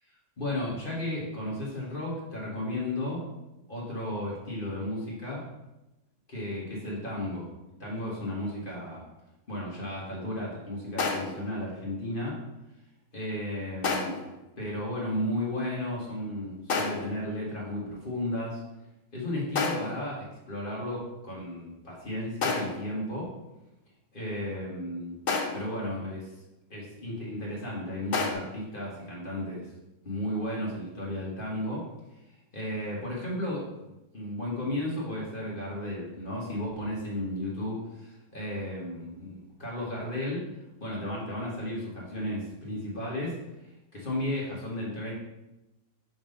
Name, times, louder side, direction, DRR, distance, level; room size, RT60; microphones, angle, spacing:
voice 1, 0.4-3.3 3.7-5.4 6.3-7.5 7.8-9.0 9.5-12.4 13.1-14.2 14.6-18.6 19.1-23.3 24.1-25.2 25.5-26.3 26.7-29.7 30.0-31.9 32.5-40.5 40.8-43.4 43.9-45.1, left 1 dB, 30° left, -5 dB, 1.4 m, -34 dB
sound 1, 11.0-11.5 13.8-14.3 16.7-17.2 19.5-20.1 22.4-22.9 25.3-25.8 28.1-28.3, left 4 dB, 85° left, 0.5 m, -30 dB
5.3 x 3.6 x 5.2 m, 0.99 s
omnidirectional pair, 1.9 m